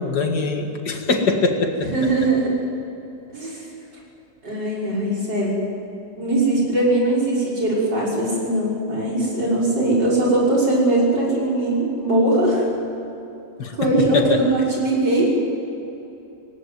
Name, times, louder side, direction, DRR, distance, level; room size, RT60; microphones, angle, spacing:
voice 1, 0.0-2.3 13.6-14.4, left 3 dB, 60° left, 3 dB, 2.5 m, -23 dB
voice 2, 1.8-2.5 3.3-3.7 4.4-5.6 6.2-12.7 13.7-15.4, right 2 dB, 65° right, -5 dB, 6.5 m, -20 dB
18.5 x 18.5 x 9.3 m, 2.9 s
omnidirectional pair, 2.0 m